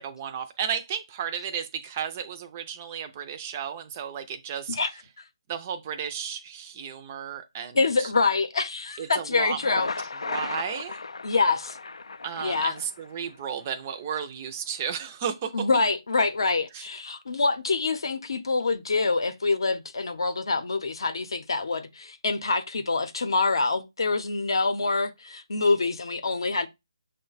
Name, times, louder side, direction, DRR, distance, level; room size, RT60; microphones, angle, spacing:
voice 1, 0.0-4.8 5.5-8.1 9.0-9.8 10.2-11.0 12.2-15.7 16.7-16.9, right 8 dB, 20° right, 0.4 m, -33 dB
voice 2, 7.7-9.9 11.2-11.8 12.4-12.7 15.5-26.7, left 3 dB, 60° left, 0.7 m, -25 dB
Thunder, 9.4-13.4, left 4 dB, 85° left, 0.3 m, -36 dB
6.3 x 2.1 x 3.9 m
hypercardioid pair, 170°, 3 cm